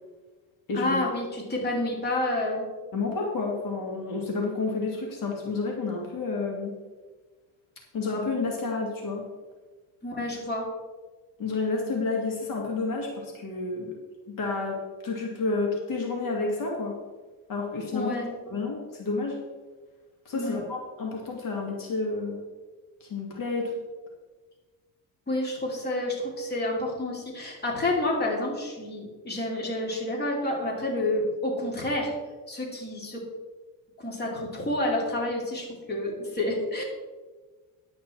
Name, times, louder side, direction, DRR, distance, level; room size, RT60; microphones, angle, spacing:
voice 1, 0.7-2.7 10.0-10.7 17.9-18.3 20.3-20.7 25.3-32.1 32.5-33.2 34.0-36.8, left 1 dB, 25° left, -1 dB, 2.9 m, -29 dB
voice 2, 2.9-6.7 7.9-9.2 11.4-14.0 14.3-17.0 17.5-18.1 18.5-19.4 20.3-22.4 23.0-23.7, left 3 dB, 60° left, -1 dB, 2.4 m, -30 dB
10.5 x 8.5 x 4.4 m, 1.3 s
cardioid pair, 125°, 37 cm